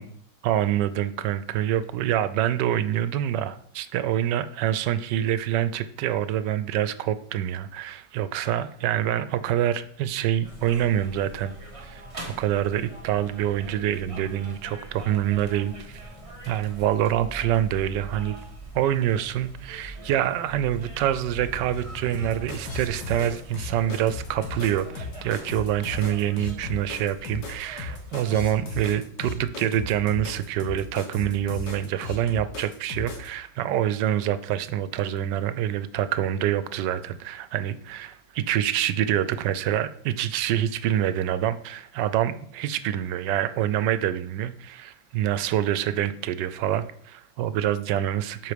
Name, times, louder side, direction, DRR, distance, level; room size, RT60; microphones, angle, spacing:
voice 1, 0.4-11.5 11.8-12.0 12.4-16.0 16.5-18.4 18.7-48.5, right 11 dB, 90° right, 13 dB, 1.2 m, -26 dB
sound 1, 10.4-28.4, right 1 dB, 20° right, 1.2 m, -42 dB
sound 2, 22.1-33.3, left 4 dB, 80° left, 2.1 m, -36 dB
7.8 x 5.3 x 5.1 m, 0.62 s
omnidirectional pair, 1.8 m